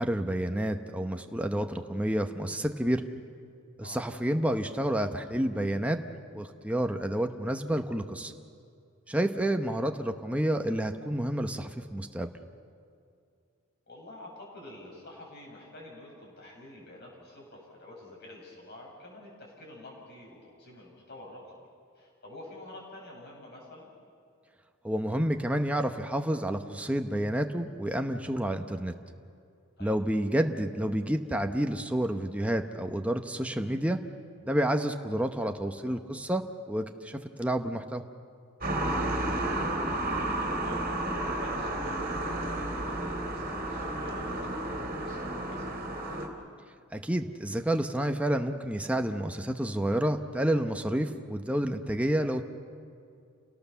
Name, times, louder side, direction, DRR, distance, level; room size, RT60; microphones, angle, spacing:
voice 1, 0.0-3.0 3.8-6.0 6.3-8.3 9.1-12.3 24.8-28.9 29.8-34.0 34.4-38.0 46.9-52.4, right 1 dB, 5° right, 5 dB, 0.9 m, -29 dB
voice 2, 13.9-21.7 22.0-23.9 29.8-29.9 37.3-37.5 39.2-46.2, left 1 dB, 55° left, -2 dB, 7.5 m, -49 dB
sound 1, 38.6-46.3, right 1 dB, 45° right, 2.9 m, -32 dB
29.0 x 18.0 x 7.1 m, 2.4 s
head